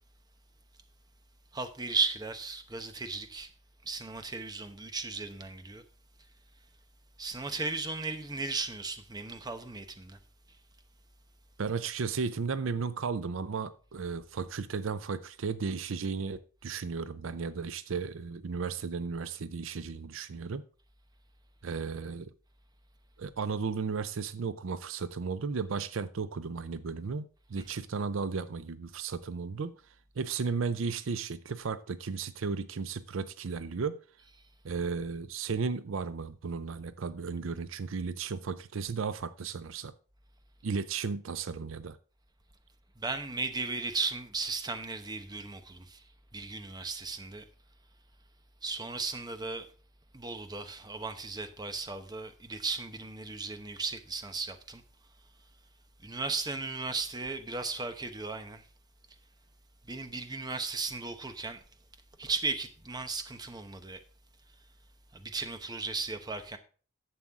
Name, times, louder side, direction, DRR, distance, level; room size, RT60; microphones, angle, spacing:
voice 1, 1.5-3.5 3.8-5.8 7.2-10.2 43.0-46.0 46.3-47.4 48.6-49.7 50.1-54.8 56.0-58.7 59.8-61.6 62.2-64.0 65.1-66.6, right 3 dB, 20° right, 0.9 m, -36 dB
voice 2, 11.6-20.6 21.6-22.3 23.2-29.7 30.2-34.0 34.6-39.9 40.6-42.0, right 5 dB, 70° right, 0.5 m, -34 dB
11.0 x 7.5 x 3.6 m
head